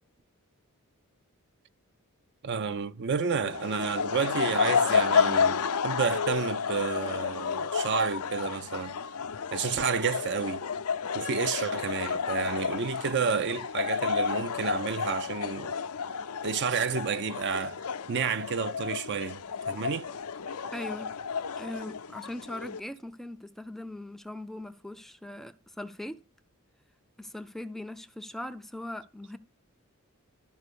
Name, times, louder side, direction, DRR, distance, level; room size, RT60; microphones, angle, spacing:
voice 1, 2.4-9.0 9.5-10.6 11.1-15.7 16.4-17.8 18.1-20.1, right 6 dB, 50° right, 0.5 m, -30 dB
sound 1, 3.4-22.8, left 6 dB, 85° left, 0.6 m, -31 dB
voice 2, 20.7-21.1 21.6-26.2 27.2-29.4, left 1 dB, ahead, 0.4 m, -40 dB
12.0 x 4.5 x 6.8 m
head